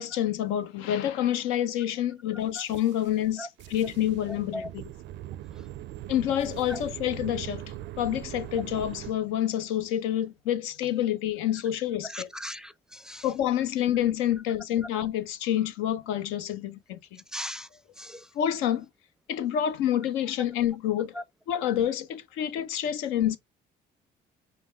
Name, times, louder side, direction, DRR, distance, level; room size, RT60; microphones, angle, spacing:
voice 1, 0.0-4.6 6.1-12.3 13.2-17.2 18.3-18.9 19.3-21.2 21.5-23.4, left 11 dB, 80° left, 0.6 m, -28 dB
sound 1, 2.6-3.1 3.6-9.1, right 13 dB, 65° right, 0.4 m, -41 dB
voice 2, 4.3-4.7 5.5-5.7 6.7-6.8 12.0-13.3 17.3-17.7 18.0-18.3 21.1-21.2, left 1 dB, 5° right, 0.4 m, -38 dB
5.2 x 2.2 x 3.5 m
supercardioid pair, 75°, 20 cm